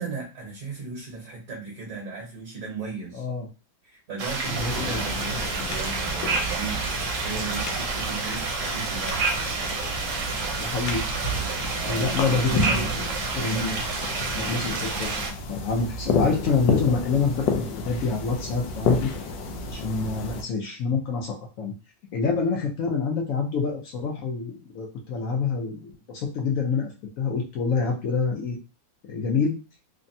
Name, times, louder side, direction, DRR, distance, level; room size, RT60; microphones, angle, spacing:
voice 1, 0.0-3.3 3.8-6.8 7.1-9.3 11.8-13.2, right 5 dB, 55° right, -3 dB, 1.2 m, -36 dB
voice 2, 3.1-3.5 4.5-5.0 10.6-11.0 11.8-12.9 13.3-13.8 14.3-15.1 15.5-19.1 19.7-21.7 22.1-26.9 27.2-28.6 29.0-29.6, left 4 dB, 65° left, 1 dB, 0.8 m, -27 dB
sound 1, 4.2-15.3, right 4 dB, 75° right, 1.3 m, -29 dB
sound 2, 4.5-20.4, left 3 dB, 80° left, 1.3 m, -31 dB
3.3 x 2.0 x 2.6 m, 0.31 s
omnidirectional pair, 2.0 m